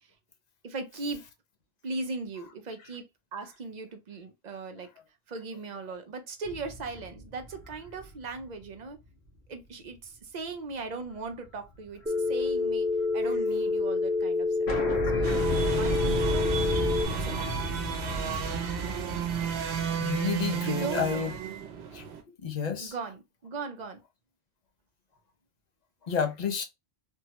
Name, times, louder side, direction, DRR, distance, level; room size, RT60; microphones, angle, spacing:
voice 1, 0.6-1.2 1.8-3.1 3.3-4.9 5.3-9.0 9.5-12.9 13.1-14.7 15.1-15.3 15.6-16.4 17.1-17.9 20.5-21.3 22.8-24.0, right 3 dB, 50° right, 0.6 m, -38 dB
sound 1, 6.4-9.1 9.5-9.6 11.1-11.5 11.7-13.2 13.5-13.6 13.8-13.9 14.2-14.3 14.7-21.4, equal, 80° left, 1.2 m, -34 dB
Telephone, 12.1-17.1, left 3 dB, 10° right, 0.4 m, -27 dB
sound 2, 15.2-22.2, right 8 dB, 80° right, 0.9 m, -33 dB
voice 2, 20.0-21.3 21.9-22.0 22.4-22.9 26.1-26.6, left 6 dB, 45° left, 0.7 m, -30 dB
3.5 x 2.1 x 2.8 m
omnidirectional pair, 1.1 m